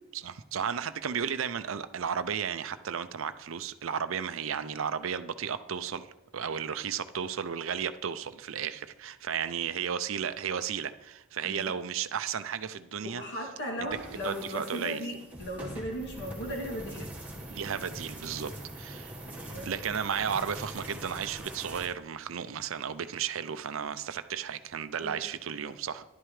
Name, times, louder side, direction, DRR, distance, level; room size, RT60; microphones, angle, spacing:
voice 1, 0.1-6.1 6.3-13.2 13.8-13.9 14.2-15.0 17.5-18.5 18.8-19.1 19.6-26.0, right 7 dB, 70° right, 12 dB, 0.5 m, -34 dB
voice 2, 13.0-17.1 19.5-19.7 25.0-25.2, equal, 55° left, -1 dB, 2.5 m, -37 dB
sound 1, 13.9-21.9, right 1 dB, 10° right, 1.5 m, -43 dB
11.0 x 11.0 x 3.3 m, 0.98 s
head